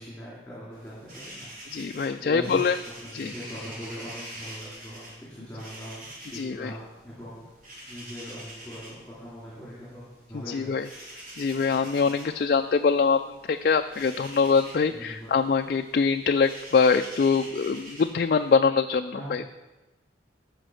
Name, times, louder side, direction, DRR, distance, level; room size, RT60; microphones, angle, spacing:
voice 1, 0.0-1.5 2.2-2.6 3.0-7.4 7.9-10.9 14.9-15.3 19.1-19.5, equal, 5° left, -9 dB, 2.8 m, -41 dB
sound 1, 0.7-18.5, right 1 dB, 45° right, 3.0 m, -46 dB
voice 2, 1.7-2.8 3.1-3.3 6.3-6.7 10.5-10.9 11.4-13.2 13.5-19.5, left 5 dB, 50° left, 7 dB, 0.3 m, -23 dB
13.5 x 5.2 x 6.3 m, 1.1 s
head